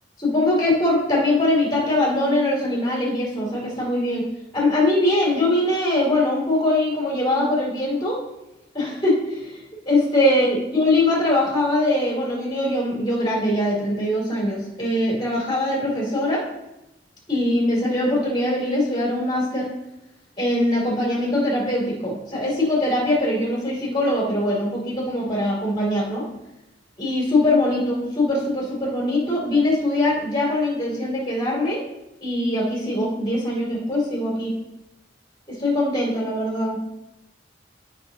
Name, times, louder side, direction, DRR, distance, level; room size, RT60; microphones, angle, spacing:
voice 1, 0.2-4.2 4.5-8.2 8.7-9.6 9.9-16.4 17.3-19.7 20.4-26.3 27.0-31.8 32.2-34.5 35.5-36.8, left 1 dB, 25° left, -4 dB, 2.9 m, -22 dB
13.0 x 5.4 x 2.9 m, 0.92 s
head